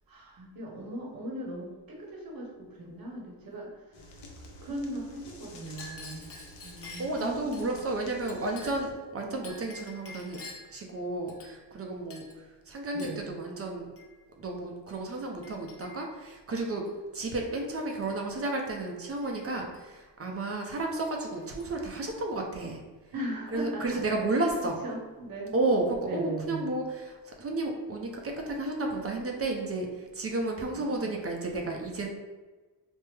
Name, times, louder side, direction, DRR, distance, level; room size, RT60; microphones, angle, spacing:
voice 1, 0.1-3.7 4.6-6.3 6.6-7.8 12.9-13.3 23.1-24.0 24.3-24.4 24.8-25.5 26.0-26.7 30.7-31.2, right 1 dB, 55° right, -2 dB, 1.0 m, -38 dB
sound 1, 3.9-8.9, left 1 dB, 80° left, 0.7 m, -50 dB
Chink clink, 5.6-7.7 8.3-9.0 9.4-10.8 11.3-11.8 12.1-12.4 13.0-13.3 14.0-14.1 14.9-15.0 15.4-16.1 16.9-17.5 17.8-18.1 19.2-19.8 20.6-20.7 21.0-21.9, left 3 dB, 35° left, 0.8 m, -48 dB
voice 2, 7.0-10.4 10.7-12.3 12.7-13.9 14.4-16.8 17.1-22.8 23.5-24.8 25.5-32.1, right 2 dB, 35° right, 1 dB, 0.5 m, -32 dB
3.4 x 2.1 x 3.2 m, 1.3 s
cardioid pair, 105°, 41 cm